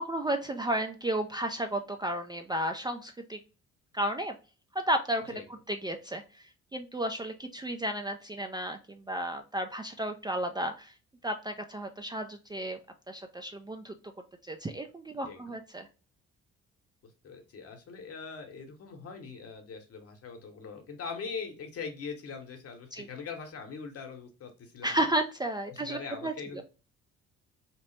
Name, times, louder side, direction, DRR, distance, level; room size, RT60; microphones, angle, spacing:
voice 1, 0.0-3.4 3.9-4.3 4.7-5.4 5.7-10.9 11.2-12.8 13.1-13.9 14.4-15.9 22.9-23.1 24.8-26.6, right 1 dB, 15° right, 5 dB, 0.3 m, -33 dB
voice 2, 17.0-25.1 25.7-26.6, left 5 dB, 55° left, 4 dB, 0.9 m, -42 dB
2.9 x 2.0 x 3.1 m, 0.34 s
supercardioid pair, 60°, 29 cm